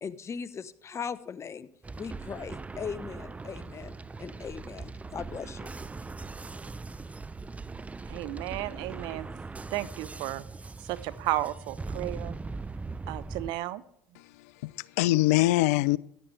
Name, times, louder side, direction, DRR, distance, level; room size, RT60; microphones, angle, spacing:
voice 1, 0.0-1.7 2.0-5.7, left 6 dB, 35° left, 16 dB, 0.8 m, -39 dB
sound 1, 1.8-13.5, right 3 dB, 15° right, 0.5 m, -40 dB
voice 2, 8.1-9.3 9.7-10.4 10.8-12.3 13.1-13.8, right 15 dB, 70° right, 17 dB, 0.7 m, -33 dB
voice 3, 14.2-16.0, left 18 dB, 80° left, 22 dB, 0.4 m, -24 dB
15.0 x 11.0 x 3.3 m, 0.68 s
hypercardioid pair, 75°, 8 cm